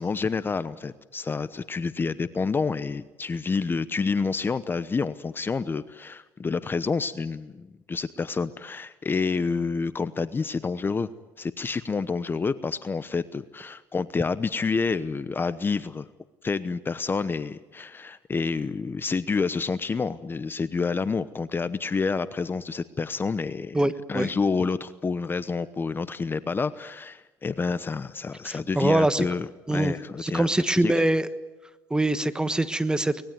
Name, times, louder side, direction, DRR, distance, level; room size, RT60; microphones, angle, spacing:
voice 1, 0.0-11.1 11.4-16.1 16.4-23.8 24.1-30.5 30.8-31.0, left 4 dB, 25° left, 14 dB, 0.9 m, -28 dB
voice 2, 23.7-24.3 28.4-29.2 29.7-29.9 30.2-31.3 31.9-33.3, right 1 dB, 10° right, 12 dB, 1.3 m, -24 dB
24.0 x 20.0 x 9.4 m, 1.1 s
supercardioid pair, 85°, 8 cm